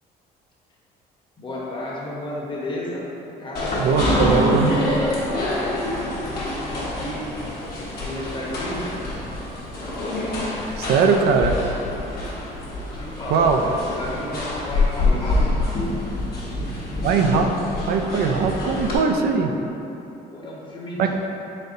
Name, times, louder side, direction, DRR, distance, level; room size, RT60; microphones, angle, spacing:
voice 1, 1.4-3.1 3.4-5.1 5.4-7.2 7.9-9.1 12.8-15.4 20.3-21.1, left 1 dB, 30° left, -5 dB, 0.9 m, -33 dB
sound 1, 3.5-19.0, left 2 dB, 60° left, 1.1 m, -26 dB
voice 2, 3.7-4.8 10.8-11.6 13.3-13.6 17.0-17.5 17.9-19.5 21.0-21.1, right 5 dB, 65° right, 4 dB, 0.4 m, -20 dB
4.1 x 3.8 x 2.6 m, 3.0 s
cardioid pair, 110°, 17 cm